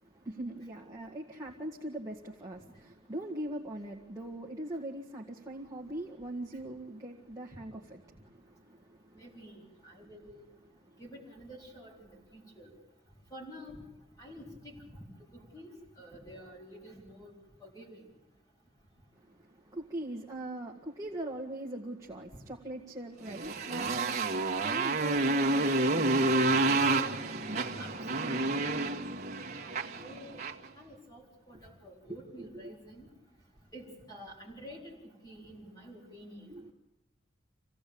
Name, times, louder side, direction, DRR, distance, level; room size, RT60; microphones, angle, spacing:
voice 1, 0.0-9.2 10.8-11.0 19.2-27.7 32.4-32.6 36.5-36.7, right 1 dB, 15° right, -1 dB, 1.8 m, -42 dB
voice 2, 9.1-10.4 11.0-12.7 13.3-13.8 14.2-15.0 15.3-17.3 17.6-18.0 27.7-28.7 29.6-29.8 30.0-30.4 30.8-33.1 33.7-34.9 35.2-36.5, equal, 20° left, -2 dB, 4.1 m, -49 dB
Motorcycle, 23.3-30.7, right 2 dB, 35° right, 1.7 m, -29 dB
27.0 x 17.0 x 8.6 m, 0.95 s
head